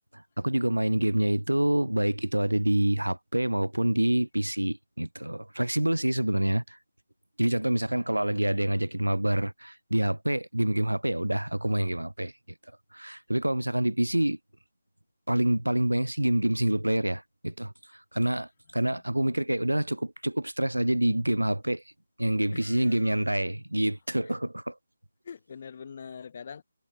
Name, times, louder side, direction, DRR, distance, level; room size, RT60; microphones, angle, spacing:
voice 1, 0.1-6.8 7.4-12.3 12.9-14.4 15.3-17.7 18.1-21.8 22.2-24.7, right 1 dB, 85° right, 0.4 m, -27 dB
voice 2, 22.5-23.2 24.2-24.3 25.2-26.6, left 6 dB, 40° left, 2.7 m, -44 dB
figure-of-eight pair, 150°, 0 cm